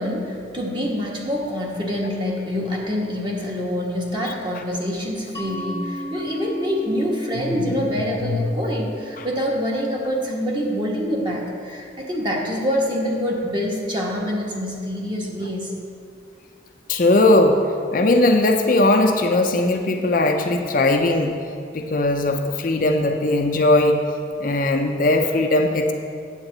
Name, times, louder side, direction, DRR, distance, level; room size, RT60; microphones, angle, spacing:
voice 1, 0.0-15.7, equal, 25° right, -2 dB, 1.2 m, -26 dB
Mallet percussion, 5.3-10.7, equal, 15° left, 0.9 m, -36 dB
voice 2, 16.9-17.6 17.9-21.4 21.7-24.0 24.4-25.9, left 2 dB, 45° left, 4 dB, 0.5 m, -19 dB
8.9 x 7.9 x 3.9 m, 2.3 s
head